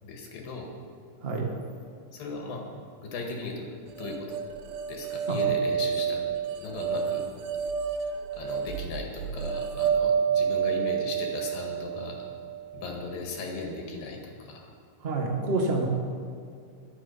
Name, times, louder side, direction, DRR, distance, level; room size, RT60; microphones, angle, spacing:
voice 1, 0.0-0.8 2.1-2.7 3.0-3.7 4.0-4.4 4.9-6.2 6.6-7.3 8.3-12.2 12.7-14.7, left 3 dB, 75° left, 1 dB, 3.6 m, -37 dB
voice 2, 1.2-1.5 5.3-5.4 15.0-15.9, right 3 dB, 40° right, 1 dB, 0.9 m, -27 dB
sound 1, 4.0-13.1, right 7 dB, 80° right, 1.7 m, -29 dB
21.0 x 7.9 x 5.6 m, 2.3 s
omnidirectional pair, 4.1 m